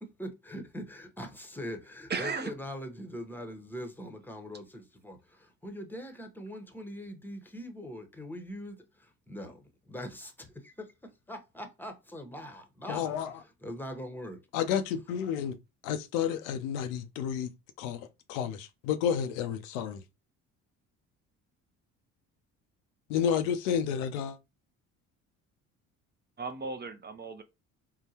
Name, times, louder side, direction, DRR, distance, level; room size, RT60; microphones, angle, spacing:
voice 1, 0.0-13.2 13.6-14.4, equal, 5° left, 0.8 m, -42 dB
voice 2, 2.1-2.5 26.4-27.4, right 4 dB, 25° right, 0.5 m, -35 dB
voice 3, 12.9-13.4 14.5-15.6 15.8-17.5 17.8-20.0 23.1-24.4, left 8 dB, 85° left, 0.5 m, -31 dB
3.6 x 2.2 x 2.8 m
hypercardioid pair, 65°, 38 cm